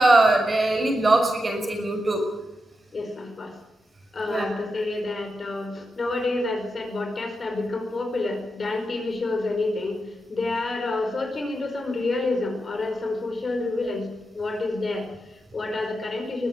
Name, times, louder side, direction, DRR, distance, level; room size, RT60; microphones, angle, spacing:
voice 1, 0.0-2.2 4.3-4.5, right 2 dB, 20° right, 4 dB, 5.8 m, -20 dB
voice 2, 2.9-3.6 4.1-16.5, left 2 dB, 30° left, 4 dB, 5.2 m, -28 dB
23.0 x 16.5 x 9.2 m, 0.97 s
wide cardioid pair, 170°, 0 cm